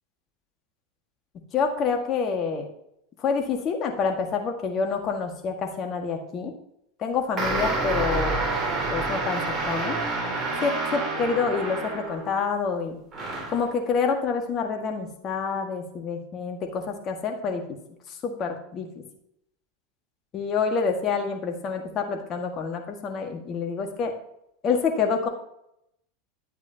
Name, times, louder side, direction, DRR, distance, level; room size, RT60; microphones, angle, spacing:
voice 1, 1.5-2.7 3.2-6.5 7.0-8.3 8.9-10.0 10.6-13.0 13.5-17.6 18.1-18.9 20.3-24.1 24.6-25.3, left 5 dB, 40° left, 3 dB, 1.8 m, -27 dB
sound 1, 7.4-12.4 13.1-13.7, right 3 dB, 25° right, 3.7 m, -28 dB
11.0 x 8.1 x 2.9 m, 0.78 s
hypercardioid pair, 90°, 0 cm